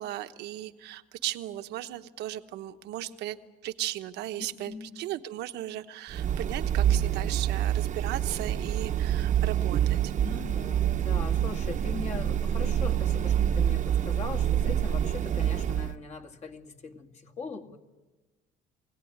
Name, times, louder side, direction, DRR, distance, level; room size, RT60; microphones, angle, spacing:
voice 1, 0.0-3.4 3.6-10.1, right 14 dB, 85° right, 9 dB, 1.1 m, -36 dB
sound 1, 6.1-15.9, right 10 dB, 45° right, 0.9 m, -27 dB
voice 2, 10.2-17.8, left 4 dB, 40° left, 3 dB, 2.2 m, -40 dB
23.5 x 17.5 x 9.5 m, 1.2 s
cardioid pair, 110°, 17 cm